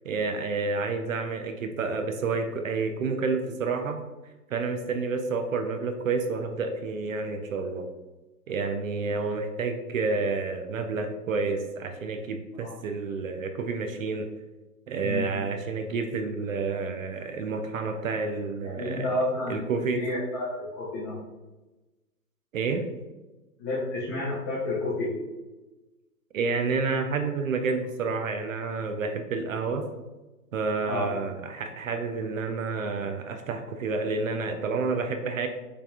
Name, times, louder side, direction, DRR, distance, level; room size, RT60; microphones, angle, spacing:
voice 1, 0.0-4.0 4.5-7.9 8.5-14.3 14.9-19.1 19.5-20.0 22.5-22.9 26.3-29.9 30.5-35.5, right 4 dB, 55° right, 5 dB, 0.5 m, -29 dB
voice 2, 18.6-21.1 23.6-25.1 30.8-31.1, left 2 dB, 15° left, -7 dB, 0.6 m, -30 dB
5.7 x 3.4 x 2.3 m, 1.1 s
hypercardioid pair, 145°, 48 cm